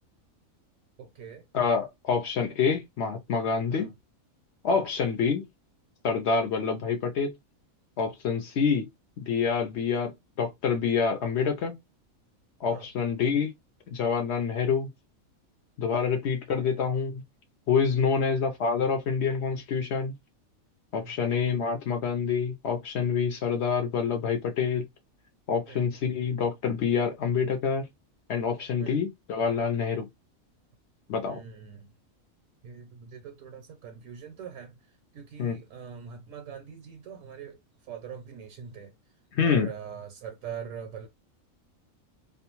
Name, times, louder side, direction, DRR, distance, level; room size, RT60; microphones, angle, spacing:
voice 1, 1.0-1.4 3.7-3.9 4.7-4.8 8.3-8.4 12.7-12.9 16.6-16.8 18.0-18.1 20.9-21.1 25.7-25.9 28.8-29.0 31.2-31.9 32.6-34.7 35.1-37.6 37.9-38.9 39.4-41.1, right 7 dB, 75° right, 0.9 m, -43 dB
voice 2, 1.5-3.9 4.6-5.4 6.0-7.3 8.0-8.9 9.2-11.8 12.6-13.5 13.9-14.9 15.8-17.2 17.7-20.1 20.9-24.9 25.5-27.9 28.3-30.1 31.1-31.4 35.4-35.6 39.3-39.7, left 6 dB, 65° left, 0.7 m, -27 dB
2.4 x 2.2 x 2.9 m
omnidirectional pair, 1.5 m